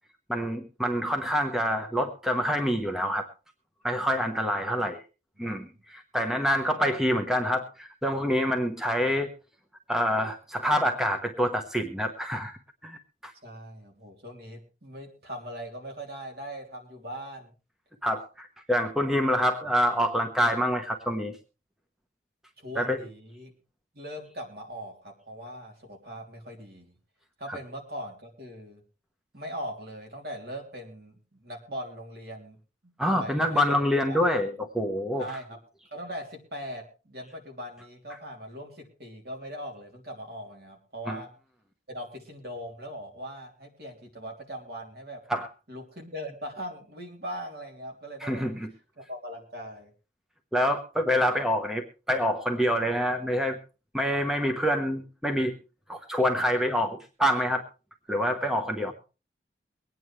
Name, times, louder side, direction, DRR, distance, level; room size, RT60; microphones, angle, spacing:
voice 1, 0.3-3.3 3.8-5.0 5.4-9.3 9.9-12.5 12.8-13.3 18.0-21.4 22.8-23.0 33.0-35.3 41.1-41.2 45.3-45.5 48.2-48.7 50.5-53.6 53.9-55.6 55.9-57.6 58.1-58.9, equal, 5° right, 4 dB, 1.0 m, -26 dB
voice 2, 4.5-4.8 5.7-5.8 13.4-17.5 22.6-23.5 23.9-26.9 27.4-28.8 29.3-32.6 33.1-33.8 34.1-34.2 35.2-35.6 35.9-41.3 41.9-45.2 45.7-48.4 49.1-49.9 58.7-58.9, equal, 60° right, 2 dB, 3.4 m, -40 dB
23.0 x 9.3 x 3.2 m, 0.32 s
head